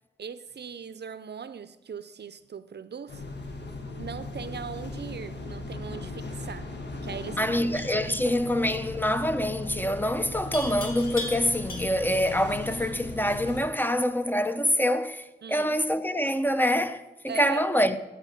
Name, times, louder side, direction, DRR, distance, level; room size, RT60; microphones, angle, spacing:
voice 1, 0.2-3.2 4.0-6.8 7.0-7.6 8.0-8.1 15.4-15.8 17.3-17.6, right 6 dB, 65° right, 0.5 m, -39 dB
sound 1, 3.1-13.6, left 2 dB, 65° left, 1.3 m, -38 dB
voice 2, 7.4-18.0, equal, 10° left, 0.6 m, -26 dB
Livestock farm animals working animals, 7.7-8.1 10.5-12.2, left 1 dB, 50° left, 2.1 m, -38 dB
11.0 x 4.6 x 5.6 m
cardioid pair, 45°, 19 cm